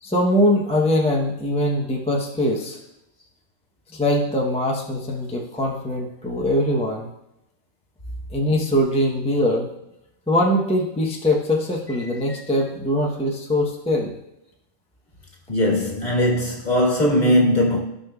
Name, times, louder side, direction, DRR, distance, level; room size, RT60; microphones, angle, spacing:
voice 1, 0.0-2.8 3.9-7.1 8.3-9.7 10.3-14.1, left 1 dB, 5° left, 0.7 m, -22 dB
voice 2, 15.5-17.8, left 1 dB, 35° left, 1.6 m, -19 dB
15.0 x 5.4 x 2.3 m
omnidirectional pair, 1.3 m